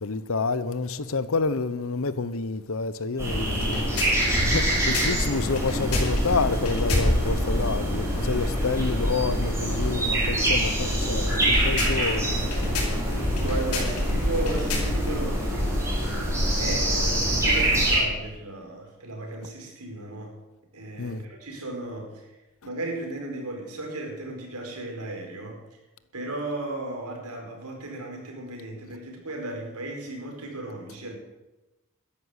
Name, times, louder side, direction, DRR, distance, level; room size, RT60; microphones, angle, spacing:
voice 1, 0.0-12.4 16.6-16.8 21.0-21.2, left 4 dB, 65° left, 0.8 m, -29 dB
sound 1, 3.2-18.0, equal, 15° right, 5.7 m, -25 dB
sound 2, 3.5-7.4 11.3-15.2, left 3 dB, 85° left, 5.7 m, -35 dB
voice 2, 13.4-15.7 16.6-20.3 20.7-22.3 22.6-25.6 26.1-31.2, right 2 dB, 85° right, 4.6 m, -35 dB
13.0 x 10.5 x 8.1 m
head